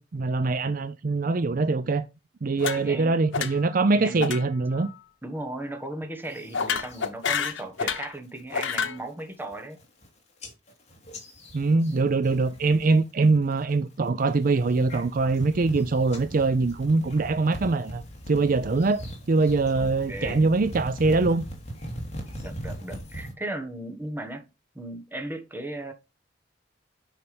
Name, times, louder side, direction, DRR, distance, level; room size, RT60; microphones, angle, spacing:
voice 1, 0.0-2.1 2.4-4.9 11.5-19.0 19.3-21.4, right 3 dB, 45° right, 0.5 m, -23 dB
sound 1, 2.6-3.1 3.3-3.8 4.2-4.4 4.7-5.0 6.5-8.1 8.5-9.0, left 6 dB, 90° left, 1.0 m, -29 dB
voice 2, 2.8-3.2 3.9-4.4 5.2-9.8 18.5-18.7 19.8-20.4 22.4-24.4 24.7-25.9, right 1 dB, 10° right, 1.3 m, -36 dB
sound 2, 6.3-7.1 7.5-7.9 8.2-8.6 9.1-9.2 9.4-10.1 10.4-13.0 13.2-13.7 14.3-23.3, equal, 35° left, 2.8 m, -40 dB
9.6 x 5.7 x 3.4 m
head